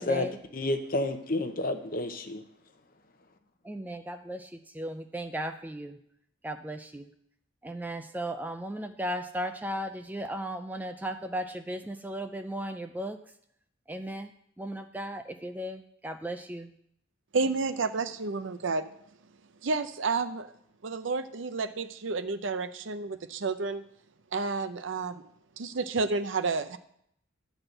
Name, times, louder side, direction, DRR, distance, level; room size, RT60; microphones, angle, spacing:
voice 1, 0.0-0.4 3.6-6.0 6.4-7.1 7.6-13.2 13.9-16.7, right 1 dB, 10° right, 7 dB, 0.4 m, -36 dB
voice 2, 0.5-2.4, left 2 dB, 45° left, 7 dB, 0.8 m, -30 dB
voice 3, 17.3-18.9 19.6-20.5 20.8-23.8 24.3-25.2 25.6-26.8, right 4 dB, 70° right, 11 dB, 0.6 m, -30 dB
11.5 x 4.1 x 7.8 m, 0.70 s
head